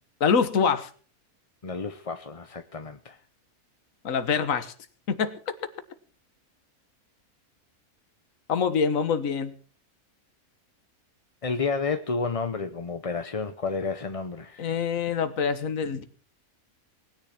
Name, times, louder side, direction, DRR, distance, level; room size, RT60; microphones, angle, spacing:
voice 1, 0.2-0.9 4.0-4.7 5.1-5.5 8.5-9.5 14.6-16.0, left 6 dB, 65° left, 1.7 m, -25 dB
voice 2, 1.6-3.2 11.4-14.8, left 4 dB, 30° left, 0.7 m, -31 dB
19.5 x 10.5 x 5.9 m
omnidirectional pair, 1.5 m